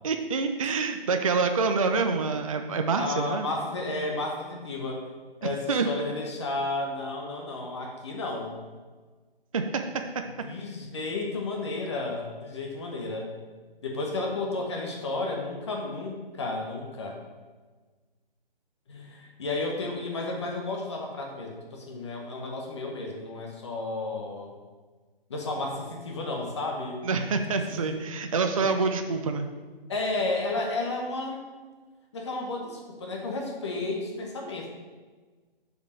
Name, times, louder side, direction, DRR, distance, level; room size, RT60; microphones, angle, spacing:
voice 1, 0.0-3.5 5.4-5.9 9.5-10.0 27.0-29.5, right 4 dB, 35° right, 6 dB, 0.5 m, -27 dB
voice 2, 3.0-5.0 5.4-8.6 10.4-13.3 13.8-17.2 18.9-24.5 25.3-27.0 27.6-28.0 28.6-28.7 29.9-31.4 32.1-34.7, left 2 dB, 30° left, 1 dB, 0.9 m, -32 dB
6.7 x 4.9 x 6.4 m, 1.4 s
figure-of-eight pair, 140°, 29 cm